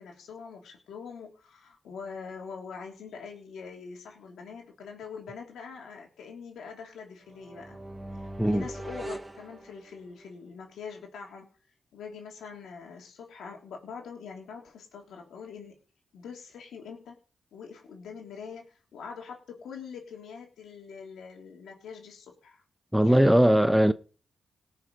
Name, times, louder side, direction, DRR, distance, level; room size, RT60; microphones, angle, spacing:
voice 1, 0.0-7.8 8.1-11.5 11.9-15.8 16.1-17.1 17.5-22.6 23.0-23.3, left 6 dB, 85° left, 3.2 m, -44 dB
sound 1, 7.3-10.3, right 1 dB, 20° right, 1.9 m, -41 dB
voice 2, 22.9-23.9, equal, 5° right, 0.9 m, -20 dB
18.0 x 6.5 x 5.5 m
supercardioid pair, 55°, 0 cm